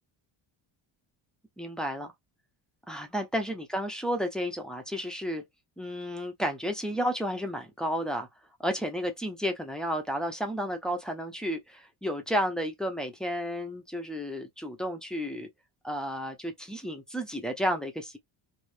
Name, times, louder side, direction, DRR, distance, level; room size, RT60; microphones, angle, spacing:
voice 1, 1.6-2.1 2.9-5.4 5.8-8.3 8.6-15.5 15.8-18.2, equal, ahead, 0.6 m, -32 dB
2.7 x 2.4 x 3.2 m
cardioid pair, 145°, 48 cm